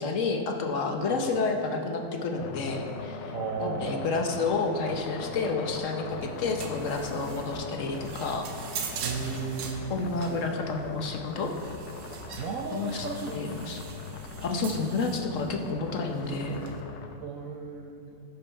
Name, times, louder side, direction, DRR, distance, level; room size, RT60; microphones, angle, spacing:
voice 1, 0.0-3.3 3.6-8.5 9.3-9.4 9.9-11.5 12.7-13.1 13.3-13.8 14.4-16.6, left 3 dB, 55° left, 3 dB, 0.9 m, -30 dB
sound 1, 2.4-17.2, left 5 dB, 70° left, 1.3 m, -41 dB
voice 2, 3.3-4.3 9.0-10.4 12.4-13.8 17.2-18.1, right 5 dB, 60° right, -1 dB, 0.9 m, -35 dB
sound 2, 6.1-16.8, right 6 dB, 85° right, 1.6 m, -42 dB
16.0 x 5.4 x 4.5 m, 2.7 s
omnidirectional pair, 2.0 m